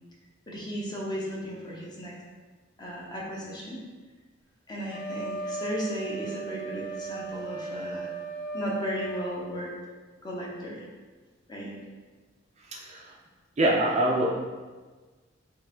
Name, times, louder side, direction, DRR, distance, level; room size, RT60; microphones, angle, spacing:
voice 1, 0.5-2.2 2.8-3.8 4.7-8.1 8.5-9.7 10.2-10.9 11.5-11.7, equal, 20° left, -4 dB, 0.7 m, -35 dB
Wind instrument woodwind instrument, 4.9-9.3, right 3 dB, 60° left, 0.9 m, -36 dB
voice 2, 12.6-13.2 13.6-14.3, right 1 dB, 35° right, -2 dB, 0.5 m, -25 dB
4.6 x 2.6 x 3.7 m, 1.4 s
head